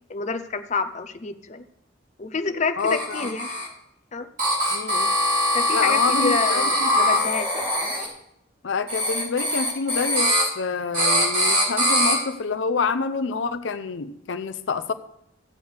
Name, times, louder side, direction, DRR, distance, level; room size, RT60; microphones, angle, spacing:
voice 1, 0.1-1.6 2.2-3.5 4.1-4.3 5.5-7.7, left 4 dB, 40° left, 9 dB, 0.6 m, -28 dB
voice 2, 2.8-3.3 4.7-5.1 5.7-6.9 8.6-14.9, left 5 dB, 80° left, 11 dB, 0.5 m, -27 dB
sound 1, 2.8-3.7 4.4-8.1 8.9-10.4 10.9-12.2, equal, 45° right, 4.6 m, -22 dB
14.5 x 8.0 x 3.4 m, 0.76 s
head